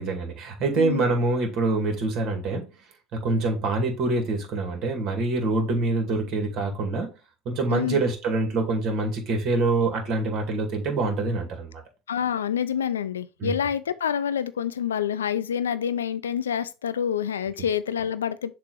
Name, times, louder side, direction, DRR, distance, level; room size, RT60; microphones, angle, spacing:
voice 1, 0.0-2.7 3.1-7.1 7.5-11.8 13.4-13.5, right 3 dB, 55° right, 2.1 m, -25 dB
voice 2, 7.7-8.0 12.1-18.5, left 8 dB, 90° left, 0.4 m, -27 dB
6.9 x 2.9 x 4.7 m
hypercardioid pair, 75°, 0 cm